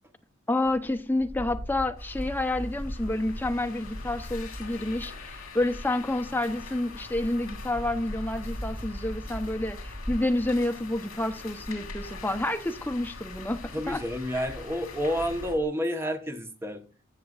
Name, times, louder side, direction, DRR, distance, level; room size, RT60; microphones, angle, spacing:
voice 1, 0.5-14.0, left 1 dB, 10° left, 0.8 m, -29 dB
sound 1, 0.6-15.6, equal, 25° left, 2.6 m, -41 dB
sound 2, 2.0-15.5, left 5 dB, 75° left, 2.5 m, -45 dB
voice 2, 13.7-16.8, equal, 10° right, 1.1 m, -30 dB
15.5 x 6.6 x 2.4 m
head